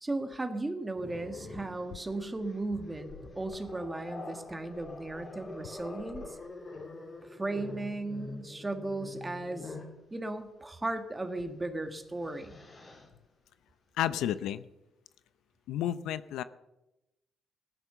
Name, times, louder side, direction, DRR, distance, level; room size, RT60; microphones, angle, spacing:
voice 1, 0.0-6.3 7.2-9.8 10.1-12.6, right 2 dB, 20° right, 7 dB, 1.7 m, -36 dB
Growling, 0.9-10.0 11.3-11.5 11.9-13.1, left 2 dB, 35° left, 3.9 m, -46 dB
voice 2, 14.0-14.6 15.7-16.4, left 11 dB, 85° left, 15 dB, 0.6 m, -31 dB
15.0 x 12.5 x 6.8 m, 0.94 s
cardioid pair, 90°, 0 cm